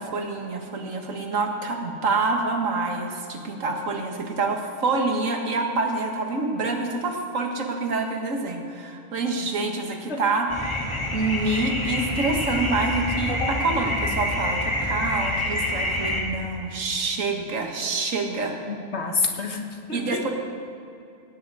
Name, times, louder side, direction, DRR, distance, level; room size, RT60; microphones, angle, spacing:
voice 1, 0.0-18.5 19.9-20.3, right 3 dB, 85° right, 3 dB, 1.8 m, -27 dB
sound 1, 10.5-16.2, left 1 dB, 25° left, 1.7 m, -27 dB
voice 2, 18.7-20.2, left 4 dB, 60° left, 3 dB, 1.6 m, -28 dB
18.0 x 9.8 x 4.8 m, 2.6 s
omnidirectional pair, 1.3 m